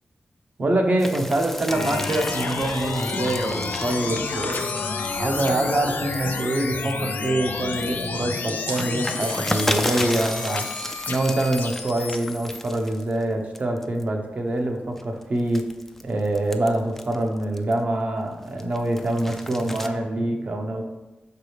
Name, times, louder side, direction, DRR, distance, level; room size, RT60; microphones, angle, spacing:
voice 1, 0.6-4.6 5.2-10.7 11.1-15.7 16.0-20.8, right 1 dB, 55° right, 2 dB, 0.9 m, -25 dB
sound 1, 1.0-6.9 7.4-13.2 13.5-14.0 14.6-17.9 18.3-19.9, left 1 dB, 10° left, 0.4 m, -34 dB
sound 2, 1.7-12.6, left 4 dB, 90° left, 0.4 m, -30 dB
sound 3, 4.0-5.5 7.6-9.7, right 2 dB, 85° right, 0.9 m, -40 dB
6.2 x 4.8 x 3.3 m, 1.1 s
wide cardioid pair, 80°, 3 cm